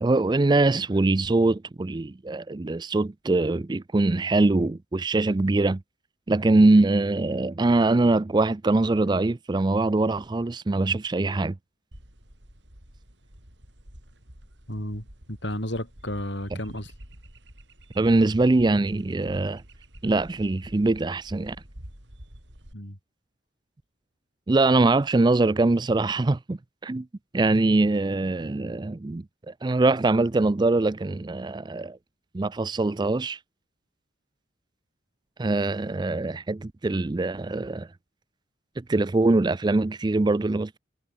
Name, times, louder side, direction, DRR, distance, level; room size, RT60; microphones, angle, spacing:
voice 1, 0.0-5.8 6.3-11.6 18.0-19.6 20.0-21.6 24.5-27.1 27.3-32.0 32.3-33.4 35.4-37.9 38.8-40.8, right 2 dB, 20° right, 0.4 m, -23 dB
sound 1, 11.9-22.7, right 1 dB, 65° right, 6.1 m, -48 dB
voice 2, 14.7-16.9 22.7-23.0, left 1 dB, 60° left, 7.2 m, -33 dB
head